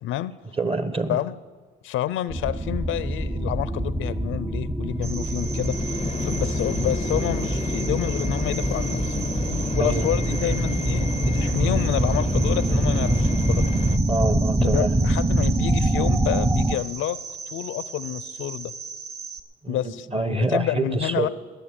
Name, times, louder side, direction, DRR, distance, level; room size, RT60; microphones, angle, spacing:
voice 1, 0.0-0.3 1.1-1.3 1.8-5.8 6.2-9.3 9.7-13.7 14.6-17.2 17.5-18.7 19.7-21.3, left 13 dB, 90° left, 17 dB, 0.6 m, -29 dB
voice 2, 0.6-1.2 9.8-10.2 14.1-14.9 19.6-21.3, right 2 dB, 30° right, 11 dB, 1.3 m, -26 dB
sound 1, 2.3-16.8, right 1 dB, 10° right, 0.6 m, -24 dB
sound 2, 4.9-14.0, left 6 dB, 30° left, 0.5 m, -32 dB
Cricket, 5.0-19.4, right 5 dB, 55° right, 1.2 m, -37 dB
19.5 x 6.8 x 9.6 m, 1.4 s
cardioid pair, 90°, 20 cm